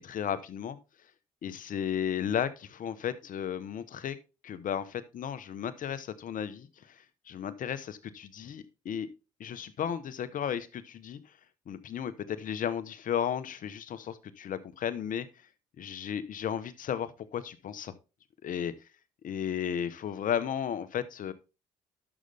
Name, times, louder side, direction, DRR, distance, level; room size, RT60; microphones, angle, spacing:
voice 1, 0.0-0.8 1.4-4.2 4.4-9.1 9.4-11.2 11.7-15.3 15.8-17.9 18.4-18.7 19.2-21.3, left 9 dB, 60° left, 14 dB, 1.1 m, -34 dB
11.0 x 6.6 x 3.5 m, 0.30 s
supercardioid pair, 65°, 16 cm